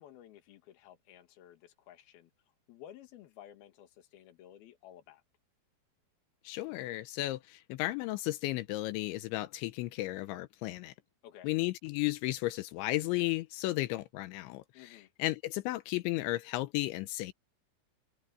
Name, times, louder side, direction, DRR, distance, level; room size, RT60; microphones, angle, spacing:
voice 1, 0.0-2.3 2.7-5.2 11.2-11.5 14.7-15.1, left 11 dB, 60° left, 3.3 m, -54 dB
voice 2, 6.4-10.9 11.4-14.9 15.2-17.3, left 18 dB, 85° left, 3.0 m, -34 dB
omnidirectional pair, 5.5 m